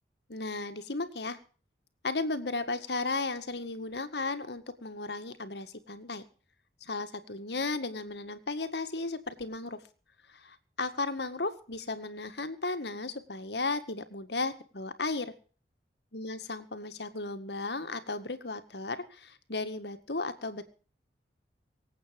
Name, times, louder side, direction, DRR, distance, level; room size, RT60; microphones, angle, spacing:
voice 1, 0.3-1.4 2.0-6.2 6.8-9.8 10.3-15.3 16.1-20.6, left 3 dB, 75° left, 9 dB, 1.9 m, -35 dB
24.5 x 8.6 x 5.3 m, 0.40 s
head